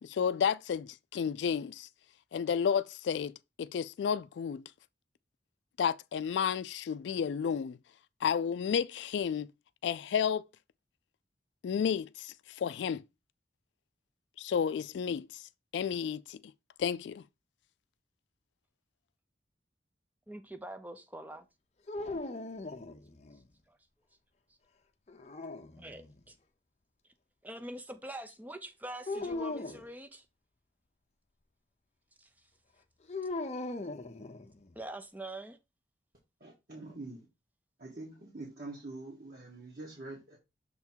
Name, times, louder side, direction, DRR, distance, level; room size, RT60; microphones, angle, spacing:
voice 1, 0.0-1.9 2.3-3.3 3.6-4.6 5.8-7.8 8.2-9.5 9.8-10.4 11.6-13.0 14.4-15.4 15.7-16.4 16.8-17.2, left 7 dB, 80° left, 0.3 m, -31 dB
voice 2, 20.3-21.5 23.7-23.8 25.8-26.4 27.4-30.3 32.2-32.5 34.8-35.6, right 1 dB, 10° right, 0.5 m, -44 dB
sound 1, 21.9-23.4 25.1-26.2 29.1-29.9 33.1-34.7, left 2 dB, 35° left, 0.6 m, -39 dB
voice 3, 36.4-37.3 37.8-40.4, right 2 dB, 55° right, 1.6 m, -45 dB
6.7 x 3.5 x 4.4 m
head